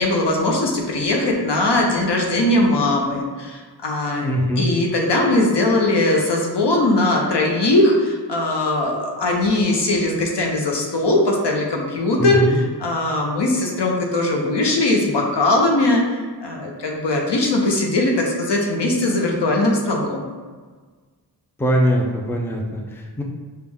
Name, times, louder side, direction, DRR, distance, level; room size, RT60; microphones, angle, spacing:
voice 1, 0.0-4.3 4.6-20.2, left 2 dB, 80° left, 0 dB, 0.8 m, -20 dB
voice 2, 4.2-4.7 12.2-12.6 21.6-23.2, equal, 5° left, 0 dB, 0.5 m, -21 dB
5.2 x 2.3 x 3.5 m, 1.5 s
wide cardioid pair, 70°, 41 cm